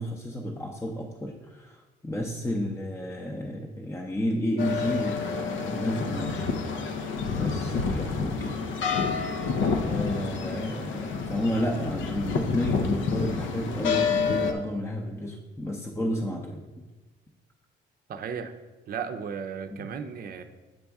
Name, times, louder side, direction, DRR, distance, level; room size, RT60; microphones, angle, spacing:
voice 1, 0.0-6.4 7.3-9.4 9.8-16.7 19.7-19.9, equal, 15° left, 0 dB, 0.6 m, -32 dB
sound 1, 4.6-14.5, left 5 dB, 75° left, 0.6 m, -28 dB
voice 2, 18.1-18.5 18.9-20.4, right 6 dB, 50° right, 6 dB, 0.5 m, -35 dB
7.8 x 4.2 x 3.5 m, 1.2 s
cardioid pair, 90°, 20 cm